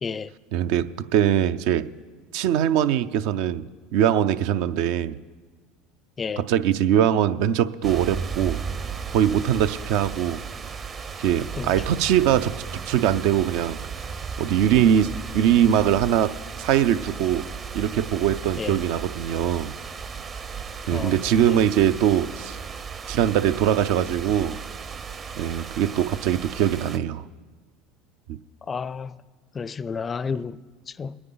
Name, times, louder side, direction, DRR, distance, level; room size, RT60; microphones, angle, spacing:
voice 1, 0.0-0.3 6.2-6.4 11.6-11.7 18.6-18.8 20.9-21.6 28.7-29.2 29.5-31.2, left 5 dB, 30° left, 0.4 m, -32 dB
voice 2, 0.5-1.9 2.3-3.7 3.9-5.2 6.4-8.6 9.1-10.4 11.2-12.5 12.8-13.8 14.4-15.1 15.3-16.3 16.6-17.5 17.7-19.7 20.9-22.6 23.1-24.6 25.4-27.2 28.3-28.4, right 10 dB, 70° right, 0.5 m, -22 dB
sound 1, 7.8-27.0, right 5 dB, 35° right, 0.7 m, -35 dB
22.5 x 9.6 x 3.9 m
supercardioid pair, 95°, 0 cm